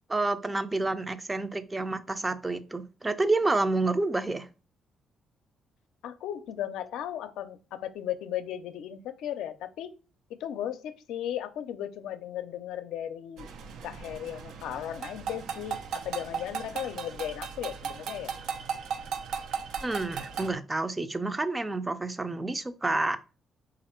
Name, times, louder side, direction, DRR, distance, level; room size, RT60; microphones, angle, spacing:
voice 1, 0.1-4.5 19.8-23.3, right 2 dB, 20° right, 0.5 m, -29 dB
voice 2, 6.0-10.0 10.3-13.5 13.8-18.3, left 11 dB, 85° left, 0.4 m, -36 dB
sound 1, 13.4-20.5, right 6 dB, 80° right, 0.5 m, -37 dB
4.1 x 2.5 x 4.3 m
cardioid pair, 90°, 0 cm